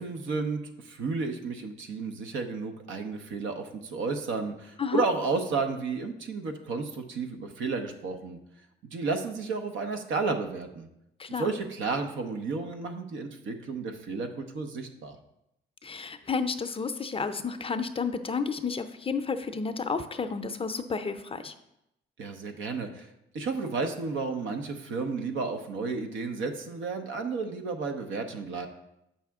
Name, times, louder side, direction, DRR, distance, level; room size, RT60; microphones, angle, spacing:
voice 1, 0.0-8.4 8.9-10.9 11.4-15.2 22.2-23.1 23.3-28.7, right 4 dB, 75° right, 5 dB, 0.9 m, -32 dB
voice 2, 11.2-11.5 15.8-21.5, left 5 dB, 30° left, 9 dB, 0.5 m, -31 dB
7.6 x 5.7 x 3.5 m, 0.83 s
cardioid pair, 90°, 20 cm